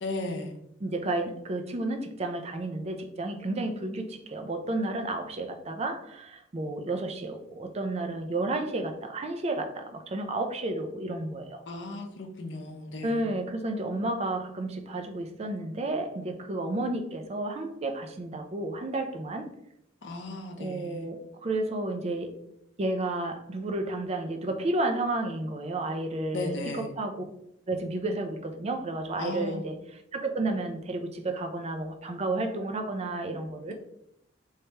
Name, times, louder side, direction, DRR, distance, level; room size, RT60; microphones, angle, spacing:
voice 1, 0.0-0.5 11.7-13.3 20.0-21.1 26.3-26.9 29.2-29.6, left 2 dB, 70° left, 2 dB, 0.7 m, -35 dB
voice 2, 0.8-11.6 13.0-19.5 20.6-22.3 22.8-27.2 27.7-29.8 30.1-33.7, right 2 dB, 35° right, 5 dB, 0.4 m, -31 dB
3.2 x 2.9 x 3.3 m, 0.76 s
head